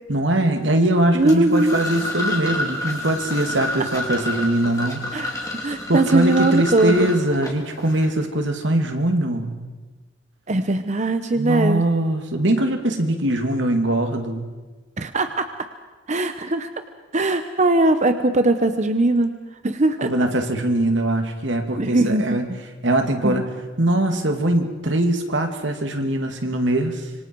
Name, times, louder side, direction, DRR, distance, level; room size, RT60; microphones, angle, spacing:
voice 1, 0.1-5.0 5.3-5.5 5.9-9.6 11.3-14.5 20.0-22.5 22.8-23.5 23.8-27.1, right 1 dB, 85° right, 5 dB, 2.5 m, -22 dB
voice 2, 1.1-1.8 5.1-5.3 5.6-7.1 10.5-11.8 15.0-15.5 16.1-16.7 17.1-19.3 19.6-20.1 21.8-22.6 23.2-23.5, right 2 dB, 40° right, 9 dB, 0.9 m, -20 dB
sound 1, 1.2-8.1, left 1 dB, 20° left, 3.5 m, -29 dB
26.0 x 24.5 x 4.7 m, 1.3 s
head